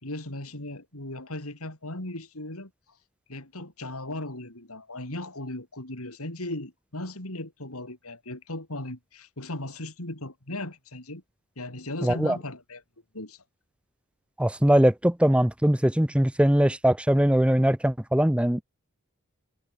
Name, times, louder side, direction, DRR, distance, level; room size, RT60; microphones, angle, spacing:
voice 1, 0.0-2.7 3.3-11.2 11.6-12.8 13.1-13.4, left 1 dB, 80° left, 5.6 m, -37 dB
voice 2, 12.0-12.4 14.4-18.6, right 1 dB, 5° right, 0.6 m, -21 dB
head